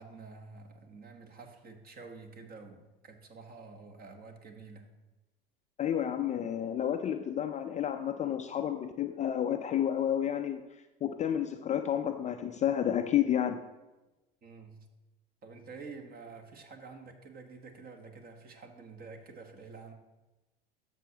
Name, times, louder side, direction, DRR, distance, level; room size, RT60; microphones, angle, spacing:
voice 1, 0.0-4.9 14.4-14.9 15.4-19.9, right 4 dB, 30° right, 6 dB, 1.3 m, -49 dB
voice 2, 5.8-13.6, left 10 dB, 25° left, 7 dB, 0.4 m, -31 dB
12.0 x 7.0 x 2.9 m, 1.1 s
hypercardioid pair, 90°, 29 cm